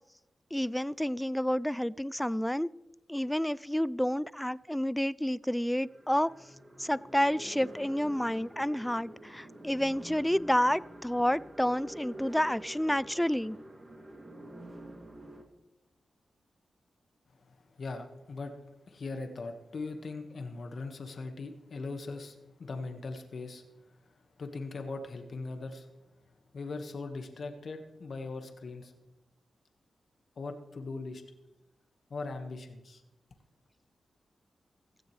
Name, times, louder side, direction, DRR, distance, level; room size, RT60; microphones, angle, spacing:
voice 1, 0.5-2.7 3.1-6.3 6.8-13.6, equal, 5° left, 20 dB, 0.3 m, -29 dB
sound 1, 4.6-4.7 5.8-15.4, right 1 dB, 20° right, 2.6 m, -48 dB
voice 2, 17.3-18.6 18.8-25.9 26.5-28.9 30.3-31.2 32.1-33.0, left 3 dB, 60° left, 5 dB, 1.6 m, -40 dB
16.5 x 15.5 x 3.3 m, 1.0 s
cardioid pair, 90°, 0 cm